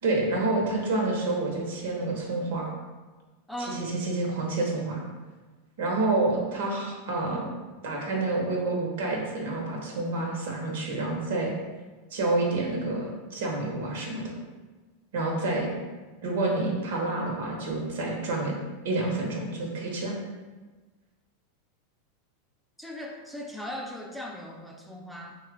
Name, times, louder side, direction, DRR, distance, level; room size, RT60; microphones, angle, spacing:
voice 1, 0.0-2.7 3.7-5.0 5.8-7.5 7.8-11.5 12.1-14.3 15.1-15.7 16.2-18.6 18.8-20.1, right 2 dB, 75° right, -1 dB, 0.8 m, -28 dB
voice 2, 3.5-4.0 22.8-25.4, equal, ahead, -1 dB, 0.4 m, -38 dB
2.9 x 2.3 x 3.5 m, 1.3 s
hypercardioid pair, 115°, 0 cm